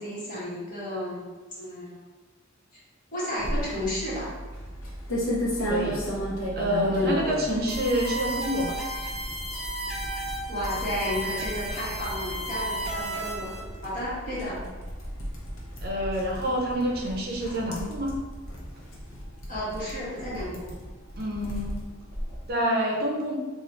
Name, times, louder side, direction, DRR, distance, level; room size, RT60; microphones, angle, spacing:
voice 1, 0.0-2.0 3.1-4.3 6.9-7.2 10.5-14.6 19.5-20.7, left 1 dB, 40° left, -9 dB, 1.5 m, -32 dB
sound 1, 3.4-22.5, equal, 70° left, 0.8 m, -35 dB
voice 2, 5.7-6.0 6.6-8.8 15.8-18.1 21.2-21.7 22.5-23.4, equal, 50° right, -1 dB, 0.6 m, -27 dB
sound 2, 7.7-13.6, right 1 dB, ahead, 0.7 m, -34 dB
3.0 x 2.4 x 4.0 m, 1.3 s
head